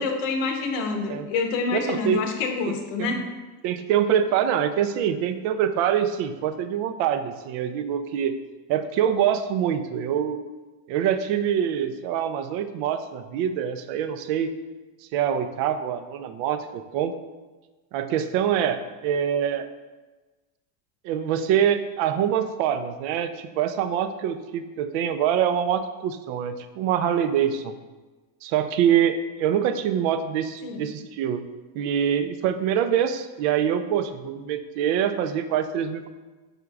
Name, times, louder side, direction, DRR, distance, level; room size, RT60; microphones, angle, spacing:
voice 1, 0.0-3.3 30.6-30.9, left 4 dB, 80° left, 4 dB, 0.9 m, -27 dB
voice 2, 1.7-2.2 2.7-3.2 3.6-8.3 8.7-10.4 10.9-14.5 15.1-17.1 17.9-19.7 21.0-27.8 28.4-31.4 31.8-36.1, right 9 dB, 70° right, 10 dB, 0.5 m, -25 dB
5.1 x 4.4 x 2.3 m, 1.2 s
supercardioid pair, 120°, 49 cm